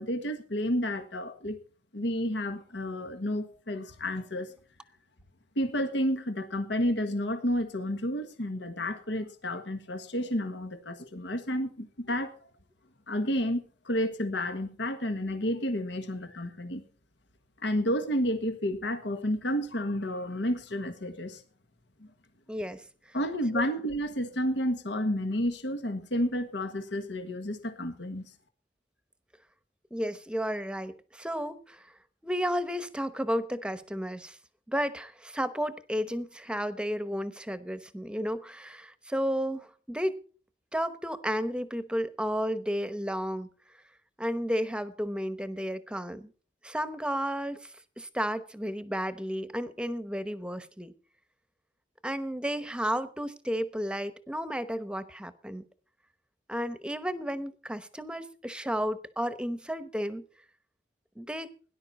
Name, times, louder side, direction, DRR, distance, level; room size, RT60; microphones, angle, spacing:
voice 1, 0.0-1.6 1.9-4.5 5.5-12.3 13.1-16.8 17.6-21.4 22.0-22.1 23.1-28.3, equal, 80° left, 8 dB, 1.5 m, -31 dB
voice 2, 22.5-22.8 23.5-23.7 29.9-31.9 32.2-34.4 34.7-40.2 40.7-43.5 44.2-46.3 46.6-50.9 52.0-55.6 56.5-60.2 61.2-61.5, equal, 5° right, 12 dB, 0.9 m, -32 dB
18.0 x 10.5 x 4.2 m, 0.40 s
head